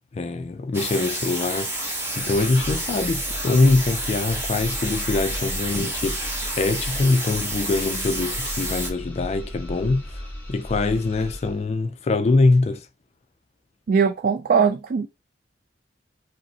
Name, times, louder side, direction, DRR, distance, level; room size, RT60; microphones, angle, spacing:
voice 1, 0.1-1.7 2.2-12.9, left 3 dB, 40° left, 0.3 m, -23 dB
sound 1, 0.7-8.9, right 1 dB, 15° right, 0.9 m, -29 dB
sound 2, 2.0-11.6, equal, 10° left, 1.2 m, -36 dB
voice 2, 13.9-15.1, right 6 dB, 55° right, 0.3 m, -20 dB
5.0 x 2.0 x 2.7 m
head